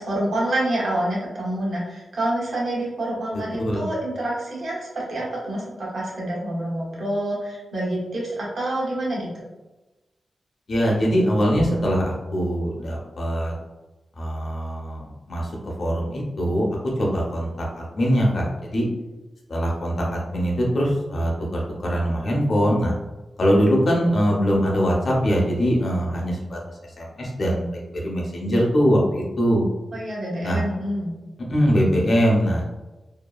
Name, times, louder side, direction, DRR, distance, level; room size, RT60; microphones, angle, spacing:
voice 1, 0.0-9.3 29.9-31.1, right 1 dB, 65° right, -5 dB, 0.9 m, -27 dB
voice 2, 10.7-13.5 14.2-15.5 15.8-16.7 17.0-17.7 18.0-18.5 18.7-18.8 19.5-22.9 23.4-26.6 27.0-27.7 28.0-29.6 30.4-30.6 31.5-32.6, equal, 55° left, -2 dB, 0.7 m, -22 dB
2.7 x 2.3 x 2.3 m, 1.1 s
wide cardioid pair, 105°, 0 cm